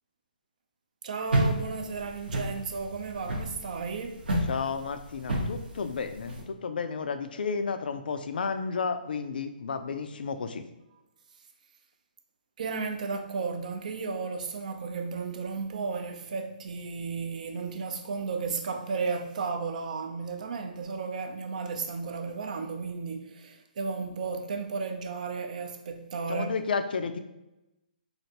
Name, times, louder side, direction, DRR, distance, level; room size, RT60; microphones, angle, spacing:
voice 1, 1.0-4.2 12.6-26.5, right 4 dB, 50° right, 0.4 m, -34 dB
sound 1, 1.3-6.4, right 1 dB, 80° right, 0.8 m, -30 dB
voice 2, 4.5-10.7 26.3-27.2, left 5 dB, 70° left, 0.3 m, -32 dB
3.2 x 2.4 x 2.7 m
hypercardioid pair, 155°, 5 cm